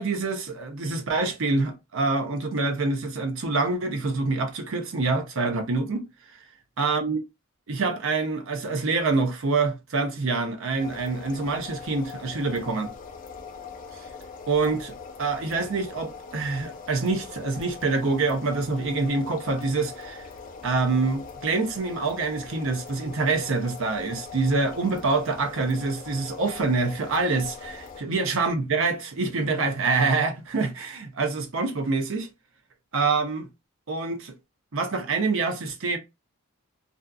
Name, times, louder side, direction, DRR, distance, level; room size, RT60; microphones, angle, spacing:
voice 1, 0.0-6.1 6.8-7.2 7.7-12.9 14.5-20.3 20.6-32.3 32.9-33.5 33.9-34.3 34.7-36.0, right 3 dB, 65° right, 0.6 m, -26 dB
sound 1, 10.8-28.0, left 5 dB, 40° left, 0.4 m, -42 dB
2.5 x 2.4 x 2.3 m
head